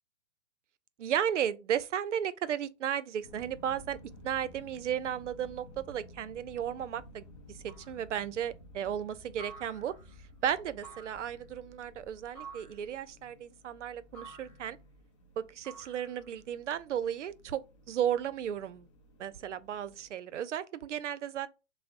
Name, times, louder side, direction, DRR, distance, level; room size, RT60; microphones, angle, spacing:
voice 1, 1.0-4.0 4.2-7.3 7.9-9.9 10.4-14.8 15.4-18.9 19.2-21.5, right 9 dB, 75° right, 0.5 m, -34 dB
sound 1, 3.2-20.1, left 1 dB, 25° left, 0.4 m, -54 dB
sound 2, 7.7-8.1 9.4-10.2 10.8-11.4 12.3-12.9 14.1-14.7 15.6-16.4, right 4 dB, 5° left, 1.8 m, -50 dB
3.4 x 2.0 x 3.8 m
hypercardioid pair, 135°, 36 cm